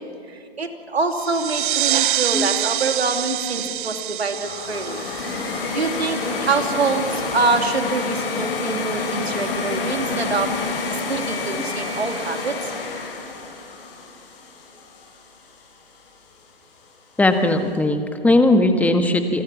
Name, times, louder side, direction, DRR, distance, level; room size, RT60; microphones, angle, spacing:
voice 1, 0.3-5.0 5.7-10.8 11.1-12.7, right 4 dB, 85° right, 5 dB, 3.1 m, -25 dB
sound 1, 1.1-6.5, right 12 dB, 55° right, 0.6 m, -26 dB
sound 2, 4.4-15.4, left 4 dB, 65° left, 7.1 m, -28 dB
voice 2, 17.2-19.4, left 2 dB, 5° left, 6 dB, 1.7 m, -18 dB
28.0 x 22.5 x 7.5 m, 2.3 s
hypercardioid pair, 125°, 31 cm